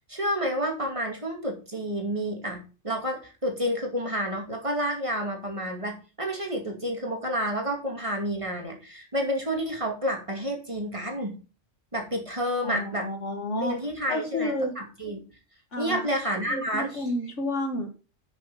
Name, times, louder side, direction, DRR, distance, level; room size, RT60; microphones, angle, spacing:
voice 1, 0.0-11.4 11.9-13.1 13.6-15.2 15.8-17.1, equal, 25° right, 1 dB, 2.5 m, -30 dB
voice 2, 12.6-13.8 14.1-14.8 15.7-18.0, left 1 dB, 70° left, 5 dB, 2.2 m, -31 dB
8.1 x 7.1 x 5.7 m, 0.34 s
omnidirectional pair, 1.3 m